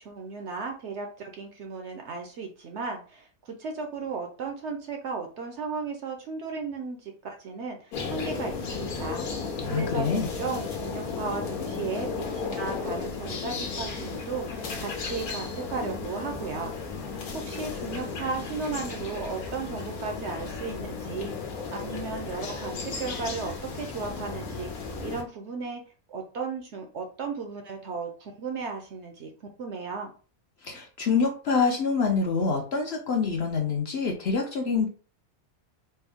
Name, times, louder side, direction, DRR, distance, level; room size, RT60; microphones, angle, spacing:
voice 1, 0.0-9.3 9.7-16.7 17.3-21.3 21.7-24.7 25.0-25.8 26.1-30.1, right 4 dB, 65° right, 4 dB, 0.8 m, -35 dB
sound 1, 7.9-25.2, left 4 dB, 85° left, 1.4 m, -34 dB
voice 2, 9.6-10.3 30.6-34.9, left 5 dB, 60° left, 2 dB, 0.8 m, -26 dB
4.3 x 2.0 x 3.4 m, 0.38 s
omnidirectional pair, 1.5 m